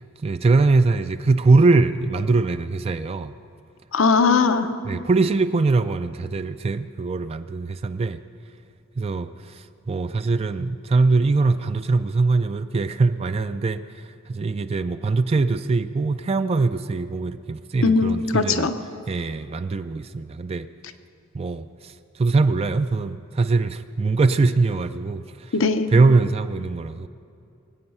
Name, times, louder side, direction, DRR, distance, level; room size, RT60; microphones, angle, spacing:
voice 1, 0.0-3.3 4.8-8.2 9.0-9.3 9.9-13.8 14.3-18.7 19.1-20.7 21.3-21.7 22.2-25.2 25.9-27.1, right 3 dB, 30° right, 10 dB, 0.3 m, -22 dB
voice 2, 3.9-4.7 17.8-18.7 25.5-25.9, left 4 dB, 75° left, 9 dB, 0.8 m, -19 dB
22.5 x 8.7 x 5.5 m, 2.6 s
head